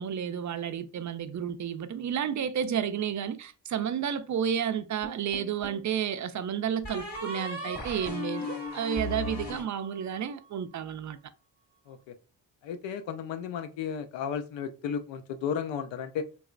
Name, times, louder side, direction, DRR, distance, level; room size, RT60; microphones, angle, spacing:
voice 1, 0.0-11.2, right 8 dB, 45° right, 0.4 m, -31 dB
sound 1, 5.0-5.9 6.8-10.3, left 2 dB, 20° left, 1.7 m, -37 dB
voice 2, 12.6-16.3, left 7 dB, 90° left, 0.6 m, -34 dB
3.3 x 2.9 x 2.4 m
cardioid pair, 80°, 43 cm